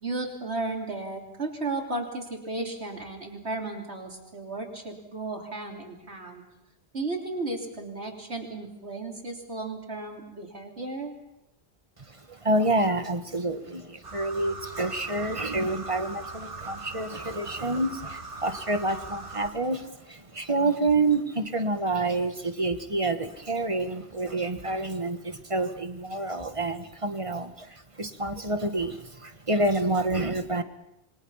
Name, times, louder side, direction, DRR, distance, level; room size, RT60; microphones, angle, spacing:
voice 1, 0.0-6.4 6.9-11.1, right 2 dB, 75° right, 1 dB, 3.7 m, -34 dB
voice 2, 12.1-30.6, right 2 dB, 30° right, 8 dB, 1.6 m, -28 dB
sound 1, 14.0-19.5, right 3 dB, 55° right, 2.7 m, -40 dB
28.0 x 24.0 x 5.8 m, 0.87 s
omnidirectional pair, 1.1 m